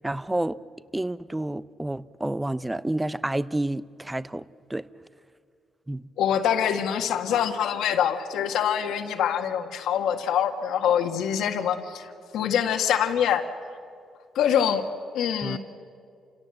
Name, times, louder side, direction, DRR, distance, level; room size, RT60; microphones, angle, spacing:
voice 1, 0.0-0.6 0.9-4.9 5.9-6.1 15.4-15.6, right 1 dB, 10° right, 0.6 m, -29 dB
voice 2, 6.2-13.5 14.4-14.8 15.1-15.6, left 9 dB, 80° left, 1.7 m, -25 dB
29.0 x 17.0 x 7.9 m
cardioid pair, 90°, 0 cm